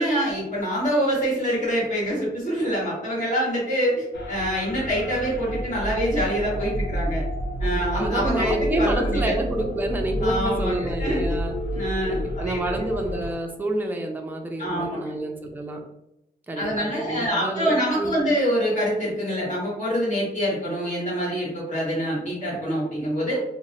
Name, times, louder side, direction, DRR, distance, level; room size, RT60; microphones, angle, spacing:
voice 1, 0.0-7.2 7.6-9.3 10.2-11.3 11.7-12.8 14.6-15.1 16.6-23.4, equal, 45° left, -6 dB, 1.4 m, -25 dB
sound 1, 4.1-13.3, equal, 75° left, 0.5 m, -29 dB
voice 2, 7.7-11.6 12.1-15.8 16.5-18.2, right 1 dB, 10° right, 2 dB, 0.4 m, -29 dB
2.9 x 2.0 x 2.6 m, 0.87 s
wide cardioid pair, 100°, 18 cm